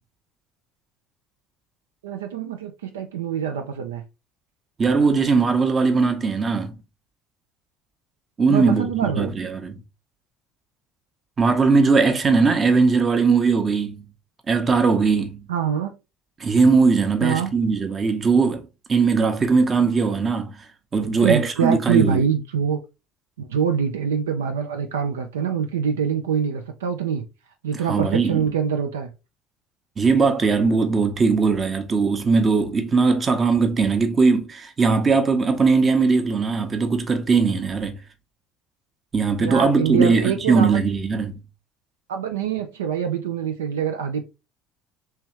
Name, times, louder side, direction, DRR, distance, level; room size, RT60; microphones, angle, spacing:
voice 1, 2.0-4.0 8.5-9.4 15.5-16.0 17.2-17.5 19.8-19.9 21.2-22.8 23.4-27.2 27.6-29.1 39.4-40.9 42.1-44.2, right 7 dB, 80° right, 0.4 m, -25 dB
voice 2, 4.8-6.7 8.4-9.7 11.4-14.0 14.5-15.4 16.4-20.5 20.9-22.2 27.9-28.5 30.0-38.0 39.1-41.4, right 4 dB, 30° right, 0.8 m, -19 dB
3.3 x 3.1 x 3.0 m
figure-of-eight pair, 65°, 0 cm